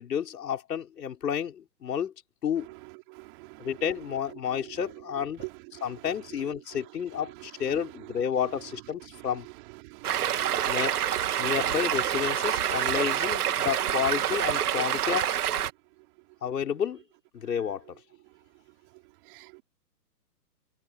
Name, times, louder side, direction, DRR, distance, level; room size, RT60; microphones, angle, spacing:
voice 1, 0.0-2.1 2.4-2.7 3.6-5.5 5.8-9.5 10.6-11.0 11.4-15.3 16.4-17.0 17.3-17.8, left 8 dB, 80° left, 5.3 m, -31 dB
voice 2, 3.1-3.7 5.7-5.8 9.9-10.8 11.4-11.5 19.3-19.6, right 31 dB, 30° right, 3.3 m, -46 dB
Stream, 10.0-15.7, right 10 dB, 65° right, 3.2 m, -27 dB
hypercardioid pair, 155°, 49 cm